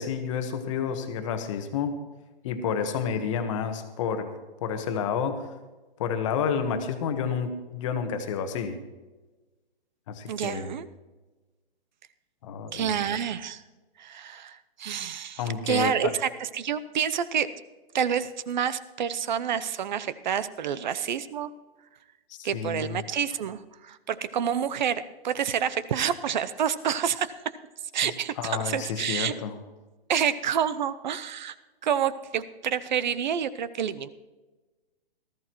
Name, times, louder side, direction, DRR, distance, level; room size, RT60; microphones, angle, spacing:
voice 1, 0.0-2.0 2.4-4.3 4.6-5.5 6.0-8.8 10.1-10.7 12.4-12.9 15.4-16.1 22.3-23.0 28.0-28.1 28.4-29.6, left 6 dB, 30° left, 8 dB, 1.2 m, -30 dB
voice 2, 10.3-10.9 12.7-13.6 14.0-17.5 17.9-21.5 22.4-27.3 27.9-29.3 30.1-31.5 31.8-34.1, right 8 dB, 50° right, 15 dB, 0.7 m, -28 dB
18.5 x 13.5 x 3.1 m, 1.2 s
hypercardioid pair, 160°, 30 cm